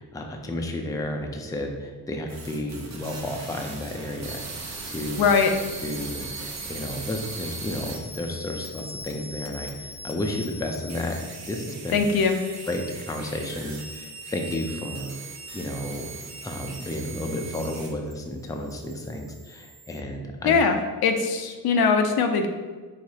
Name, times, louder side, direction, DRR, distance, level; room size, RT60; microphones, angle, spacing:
voice 1, 0.0-5.3 5.8-11.2 11.5-12.0 12.7-15.1 15.5-16.1 16.4-20.5, left 1 dB, 10° left, 3 dB, 0.4 m, -32 dB
sound 1, 2.3-18.1 18.4-20.0, right 2 dB, 45° right, 0.9 m, -39 dB
voice 2, 5.2-5.5 11.9-12.3 20.4-22.5, left 5 dB, 70° left, 6 dB, 0.6 m, -21 dB
4.9 x 3.5 x 2.8 m, 1.4 s
cardioid pair, 100°, 38 cm